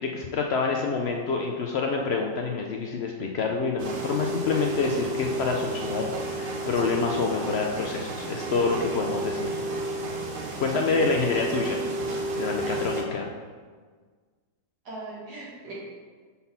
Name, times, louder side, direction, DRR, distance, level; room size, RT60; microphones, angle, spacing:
voice 1, 0.0-9.5 10.6-11.8 12.4-13.3, left 4 dB, 85° left, 1 dB, 0.5 m, -27 dB
sound 1, 3.8-13.0, right 2 dB, 50° right, 0.7 m, -32 dB
voice 2, 14.9-15.7, right 2 dB, 75° right, -7 dB, 2.4 m, -40 dB
5.5 x 4.2 x 5.5 m, 1.6 s
omnidirectional pair, 1.7 m